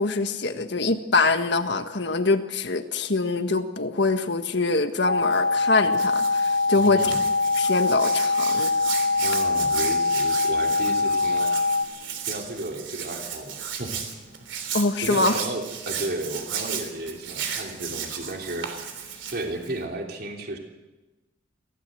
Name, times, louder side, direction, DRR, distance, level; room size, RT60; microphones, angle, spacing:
voice 1, 0.0-7.1 7.6-8.7 14.7-15.4, left 3 dB, 60° left, 8 dB, 1.6 m, -24 dB
sound 1, 5.0-11.8, left 3 dB, 85° left, 2.7 m, -23 dB
Hands, 5.2-19.8, right 7 dB, 70° right, 3.4 m, -35 dB
voice 2, 6.8-7.2 9.2-11.5 12.3-14.0 15.0-18.7 19.3-20.6, right 1 dB, 50° right, 2 dB, 3.2 m, -33 dB
23.5 x 16.5 x 7.9 m, 1.1 s
head